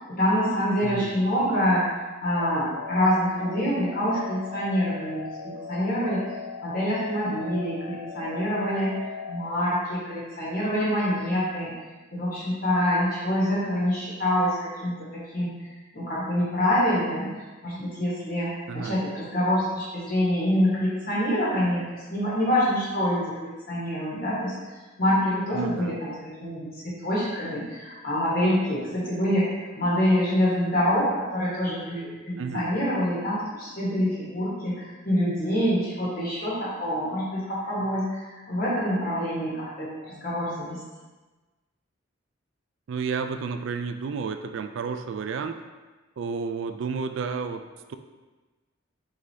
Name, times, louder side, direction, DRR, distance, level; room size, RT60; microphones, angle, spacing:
voice 1, 0.2-1.8 2.2-6.3 6.6-9.0 9.3-11.7 12.1-15.5 15.9-17.3 17.6-21.8 22.1-24.5 25.0-26.1 26.4-29.5 29.7-40.8, equal, 45° left, -8 dB, 1.2 m, -26 dB
voice 2, 0.8-1.1 18.7-19.0 25.5-26.0 32.4-32.7 42.9-45.6 46.2-48.0, right 5 dB, 65° right, 8 dB, 0.3 m, -31 dB
sound 1, 2.4-9.5, left 6 dB, 80° left, 0.4 m, -38 dB
4.8 x 3.8 x 2.8 m, 1.2 s
head